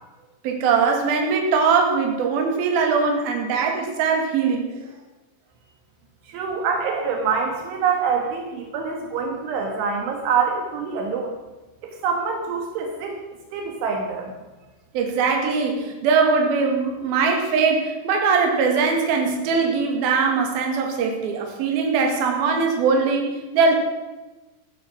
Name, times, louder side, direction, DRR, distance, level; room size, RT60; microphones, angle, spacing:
voice 1, 0.4-4.8 6.9-7.0 14.9-23.8, right 5 dB, 55° right, 2 dB, 3.7 m, -21 dB
voice 2, 6.3-11.4 11.8-13.2 13.5-14.3, right 5 dB, 75° right, 2 dB, 3.8 m, -25 dB
14.5 x 13.5 x 6.2 m, 1.2 s
omnidirectional pair, 5.8 m